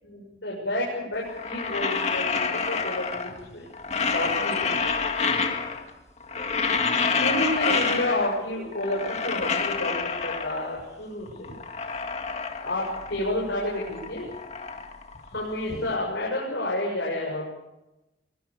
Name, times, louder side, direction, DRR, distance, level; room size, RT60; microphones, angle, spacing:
voice 1, 0.0-3.7 4.1-4.8 7.0-11.5 12.6-14.3 15.3-17.5, left 1 dB, 80° left, -3 dB, 7.0 m, -30 dB
sound 1, 1.3-3.4 3.7-5.9 6.2-8.4 8.7-10.8 11.3-13.3 13.5-15.7, left 5 dB, 35° left, 2.0 m, -28 dB
23.5 x 20.0 x 6.9 m, 0.96 s
head